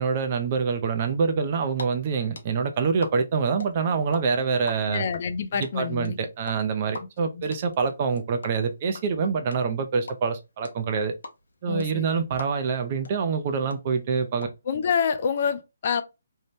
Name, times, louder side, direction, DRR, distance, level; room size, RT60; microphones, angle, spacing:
voice 1, 0.0-5.1 5.5-11.1 11.6-14.5, right 5 dB, 30° right, 0.4 m, -26 dB
sound 1, 1.4-1.8 2.1-4.2 4.5-12.8 13.0-13.1 13.4-14.5, left 3 dB, 90° left, 0.6 m, -39 dB
voice 2, 4.8-6.2 7.3-7.4 11.7-12.1 14.7-16.0, left 6 dB, 40° left, 0.3 m, -27 dB
2.7 x 2.1 x 3.1 m
hypercardioid pair, 170°, 0 cm